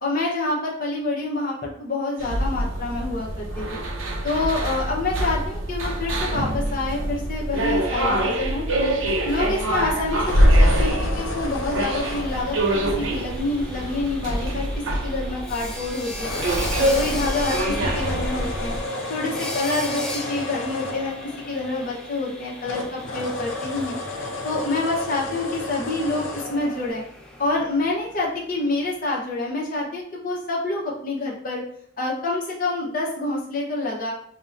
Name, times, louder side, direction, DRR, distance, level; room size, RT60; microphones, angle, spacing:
voice 1, 0.0-3.8 4.2-8.9 9.2-12.6 13.0-14.7 15.0-16.3 16.7-18.7 19.1-21.1 21.5-24.0 24.4-27.0 27.4-31.6 32.0-34.1, left 2 dB, 45° left, -4 dB, 0.8 m, -27 dB
sound 1, 2.2-18.8, right 1 dB, 80° right, 0.6 m, -24 dB
sound 2, 10.2-13.7 16.1-22.3 22.6-26.9, left 2 dB, 80° left, 0.7 m, -33 dB
Sawing, 11.1-28.9, left 1 dB, 5° left, 0.4 m, -39 dB
5.2 x 2.1 x 2.6 m, 0.64 s
head